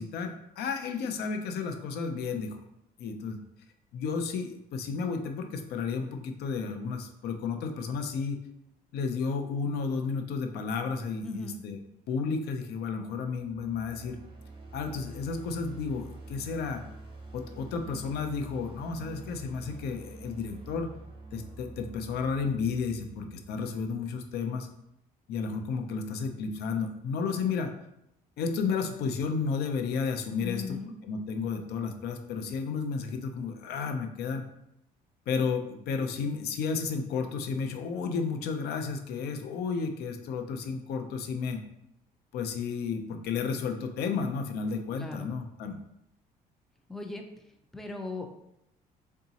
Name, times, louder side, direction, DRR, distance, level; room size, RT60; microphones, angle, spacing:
voice 1, 0.0-2.6 3.0-3.4 3.9-8.4 8.9-11.8 12.1-14.2 14.7-16.8 17.3-20.9 21.3-24.7 25.3-27.7 28.4-34.4 35.3-41.6 42.3-45.8, left 5 dB, 70° left, 6 dB, 0.6 m, -32 dB
voice 2, 11.2-11.6 30.4-30.9 45.0-45.3 46.9-47.2 47.7-48.3, left 3 dB, ahead, 4 dB, 0.4 m, -37 dB
sound 1, 13.2-24.2, right 2 dB, 30° right, 0.8 m, -47 dB
3.9 x 3.5 x 2.8 m, 0.79 s
cardioid pair, 110°, 17 cm